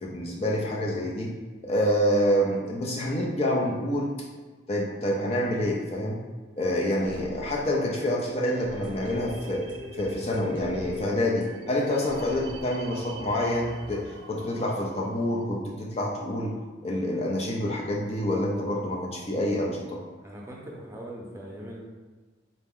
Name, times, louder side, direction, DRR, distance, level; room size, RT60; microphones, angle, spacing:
voice 1, 0.0-1.3 1.6-4.1 4.7-6.2 6.6-9.6 9.9-16.5 16.8-20.0, equal, 30° left, -2 dB, 0.5 m, -27 dB
sound 1, 6.9-12.6, equal, 65° left, 1.0 m, -43 dB
sound 2, 8.5-15.5, right 2 dB, 75° right, 0.5 m, -45 dB
voice 2, 20.2-21.8, right 1 dB, 15° right, -3 dB, 0.6 m, -40 dB
4.0 x 2.8 x 3.6 m, 1.4 s
head